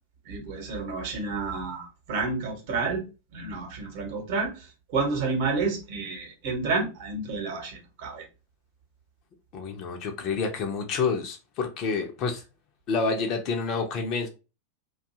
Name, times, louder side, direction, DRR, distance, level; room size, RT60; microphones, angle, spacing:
voice 1, 0.3-3.0 3.3-4.7 4.9-8.2, right 4 dB, 50° right, 0.9 m, -30 dB
voice 2, 9.5-12.4 12.9-14.3, left 4 dB, 40° left, 0.6 m, -28 dB
2.6 x 2.3 x 2.7 m
figure-of-eight pair, 90°, 0 cm